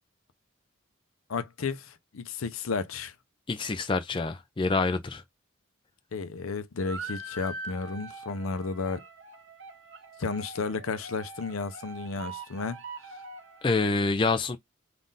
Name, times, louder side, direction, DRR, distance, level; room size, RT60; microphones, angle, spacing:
voice 1, 1.3-3.1 6.1-9.0 10.2-12.8, left 4 dB, 80° left, 0.6 m, -33 dB
voice 2, 3.5-5.2 13.6-14.6, left 3 dB, 25° left, 0.4 m, -26 dB
sound 1, 6.8-13.9, right 2 dB, 60° right, 0.7 m, -43 dB
3.7 x 2.5 x 3.9 m
head